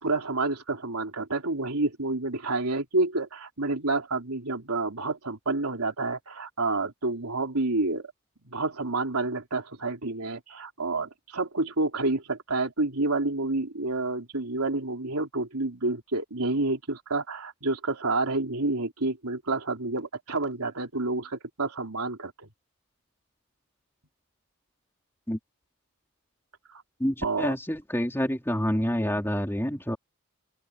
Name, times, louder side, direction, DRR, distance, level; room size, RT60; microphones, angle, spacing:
voice 1, 0.0-8.1 8.4-22.3 26.7-26.8 27.2-27.5, right 2 dB, 90° right, 3.6 m, -29 dB
voice 2, 27.0-30.0, equal, 10° left, 3.4 m, -27 dB
open air
head